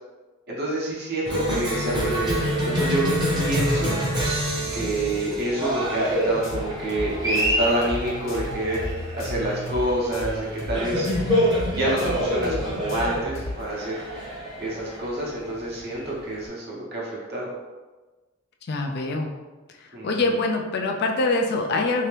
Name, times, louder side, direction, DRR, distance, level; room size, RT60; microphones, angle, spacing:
voice 1, 0.5-3.0 3.3-3.9 4.7-11.1 11.7-14.0 14.6-17.5 19.9-20.3, right 1 dB, 50° right, -4 dB, 1.0 m, -28 dB
Cheering, 1.3-16.4, equal, 20° right, 0.8 m, -27 dB
sound 1, 6.3-13.5, left 1 dB, 70° left, 1.1 m, -34 dB
voice 2, 11.1-11.6 18.7-19.3 19.8-22.1, left 3 dB, 50° left, 2 dB, 0.4 m, -25 dB
3.4 x 2.8 x 3.3 m, 1.2 s
head